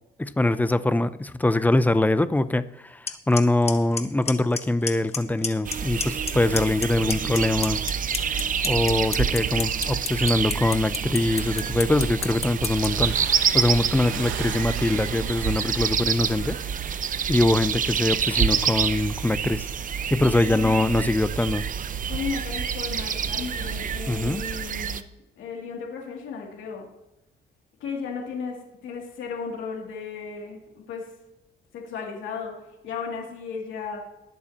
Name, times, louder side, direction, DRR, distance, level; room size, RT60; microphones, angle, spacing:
voice 1, 0.2-7.8 8.6-13.1 13.5-16.6 17.3-19.7 20.1-21.6 24.1-24.4, left 2 dB, 10° left, 14 dB, 0.5 m, -23 dB
Clock, 3.1-3.2 3.4-3.7 4.0-4.6 4.9-5.2 5.4-6.3 6.6-12.9, left 5 dB, 30° left, 1.1 m, -27 dB
sound 1, 5.6-25.0, right 7 dB, 40° right, 0.6 m, -27 dB
sound 2, 12.5-18.7, right 8 dB, 75° right, 0.9 m, -39 dB
voice 2, 20.4-21.1 22.1-25.0 25.4-26.9 27.8-31.1 31.7-32.5 32.8-34.0, left 5 dB, 80° left, -1 dB, 2.7 m, -35 dB
20.0 x 7.0 x 2.9 m, 0.95 s
cardioid pair, 90°, 20 cm